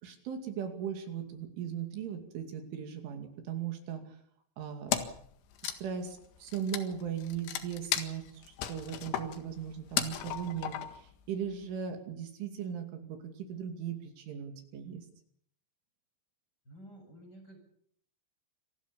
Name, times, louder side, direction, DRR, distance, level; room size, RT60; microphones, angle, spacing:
voice 1, 0.0-4.2 4.6-5.0 5.6-15.1, right 8 dB, 70° right, 5 dB, 4.9 m, -38 dB
Wood, 4.9-5.3 5.5-11.1, left 10 dB, 70° left, 4.1 m, -35 dB
voice 2, 16.6-17.6, right 1 dB, 20° left, 3 dB, 7.8 m, -51 dB
27.0 x 19.5 x 7.0 m, 0.66 s
omnidirectional pair, 5.8 m